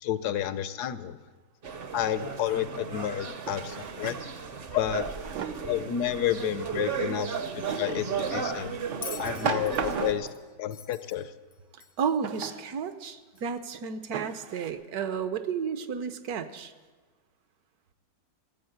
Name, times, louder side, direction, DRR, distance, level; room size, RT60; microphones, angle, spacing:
voice 1, 0.0-1.2 1.9-4.2 4.7-5.1 5.7-8.7 9.2-10.3 10.6-11.3, left 11 dB, 75° left, 14 dB, 1.2 m, -30 dB
sound 1, 1.6-10.1, right 6 dB, 45° right, 0.8 m, -35 dB
Drawer open or close, 2.0-2.1 3.4-4.2 5.0-5.7 7.6-8.1 8.9-10.4 12.2-12.7 13.4-13.5 14.1-14.7, right 7 dB, 85° right, 1.5 m, -36 dB
Bell, 9.0-12.2 13.4-13.5, left 8 dB, 55° left, 0.6 m, -45 dB
voice 2, 12.0-16.7, right 6 dB, 70° right, 10 dB, 1.3 m, -32 dB
17.5 x 8.3 x 7.9 m, 1.4 s
omnidirectional pair, 1.8 m